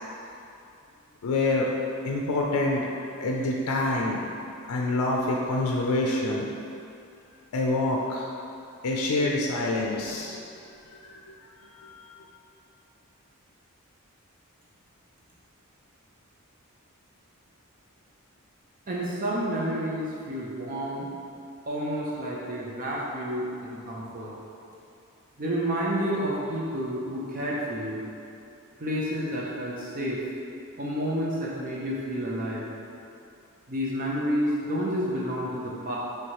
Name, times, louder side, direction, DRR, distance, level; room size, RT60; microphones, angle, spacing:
voice 1, 1.2-1.7 2.0-2.9 3.2-4.3 4.7-6.5 7.5-8.3 8.8-10.4 10.9-11.2, left 2 dB, 85° left, -1 dB, 0.4 m, -26 dB
voice 2, 18.9-21.1 21.7-24.3 25.4-28.0 28.8-30.2 30.8-32.6 33.7-36.0, equal, 40° right, -5 dB, 0.5 m, -30 dB
3.2 x 3.0 x 4.6 m, 2.6 s
head